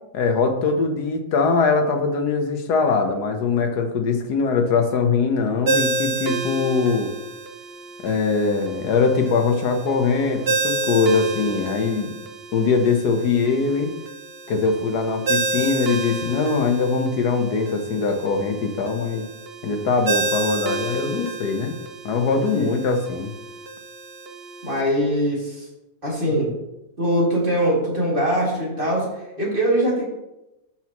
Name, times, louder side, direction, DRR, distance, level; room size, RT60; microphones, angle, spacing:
voice 1, 0.1-7.1 8.0-12.1 12.5-13.9 14.5-19.3 19.6-21.7 22.0-23.3, left 4 dB, 70° left, 4 dB, 1.6 m, -22 dB
Ringtone, 5.7-24.8, right 2 dB, 50° right, 0.7 m, -30 dB
voice 2, 24.6-25.7 26.0-26.5 27.0-30.0, equal, 30° right, -5 dB, 2.6 m, -22 dB
12.0 x 5.8 x 3.0 m, 0.96 s
omnidirectional pair, 1.8 m